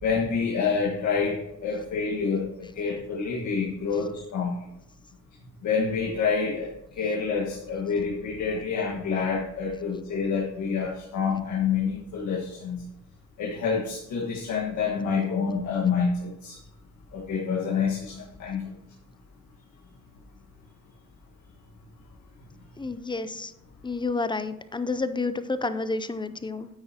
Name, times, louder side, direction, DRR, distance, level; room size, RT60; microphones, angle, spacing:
voice 1, 0.0-4.7 5.6-12.8 13.4-16.6 17.1-18.6, left 5 dB, 75° left, -3 dB, 1.6 m, -27 dB
voice 2, 22.8-23.5 23.8-26.7, left 3 dB, 15° left, 12 dB, 0.5 m, -30 dB
9.7 x 8.4 x 2.9 m, 0.83 s
cardioid pair, 90°, 30 cm